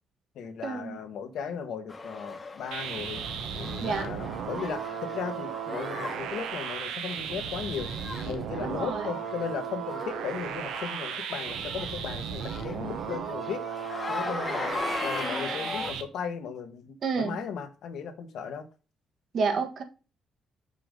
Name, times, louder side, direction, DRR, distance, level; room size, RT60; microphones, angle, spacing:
voice 1, 0.3-3.2 3.6-7.9 8.2-13.6 14.1-14.7 15.0-18.7, left 7 dB, 75° left, 1.3 m, -36 dB
sound 1, 1.9-15.9, left 3 dB, 30° left, 1.1 m, -39 dB
sound 2, 2.7-16.0, right 8 dB, 90° right, 1.1 m, -35 dB
voice 2, 8.6-9.0 15.5-15.6 17.0-17.3 19.3-19.8, right 5 dB, 60° right, 1.4 m, -29 dB
5.6 x 5.0 x 5.3 m
cardioid pair, 90°, 0 cm